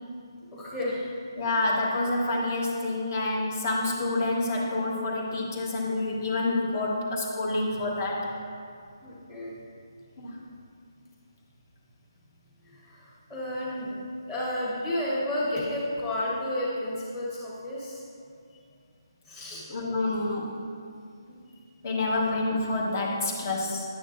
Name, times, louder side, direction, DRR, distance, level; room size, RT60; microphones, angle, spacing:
voice 1, 0.5-1.1 7.7-7.8 9.0-9.6 12.6-18.0 19.2-19.7 21.3-21.4 22.2-22.3, left 1 dB, 20° left, -8 dB, 1.5 m, -32 dB
voice 2, 1.4-8.3 10.2-10.4 19.7-20.5 21.8-23.8, left 2 dB, 35° left, -2 dB, 1.3 m, -28 dB
10.0 x 8.7 x 2.6 m, 2.3 s
hypercardioid pair, 160°, 2 cm